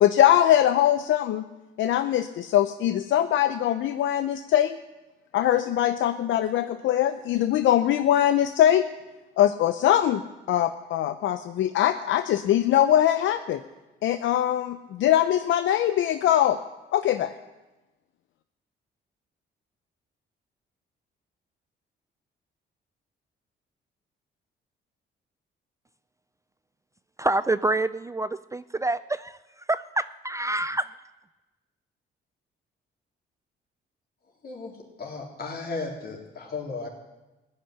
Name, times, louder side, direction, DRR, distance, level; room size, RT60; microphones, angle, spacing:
voice 1, 0.0-1.4 1.8-4.8 5.3-8.9 9.4-10.2 10.5-13.6 14.0-16.6 16.9-17.3, left 11 dB, 75° left, 10 dB, 0.6 m, -22 dB
voice 2, 27.2-29.4 29.7-30.8, right 2 dB, 15° right, 14 dB, 0.4 m, -27 dB
voice 3, 35.0-36.9, left 4 dB, 50° left, -1 dB, 3.8 m, -35 dB
16.0 x 6.6 x 10.0 m, 1.1 s
cardioid pair, 90°, 20 cm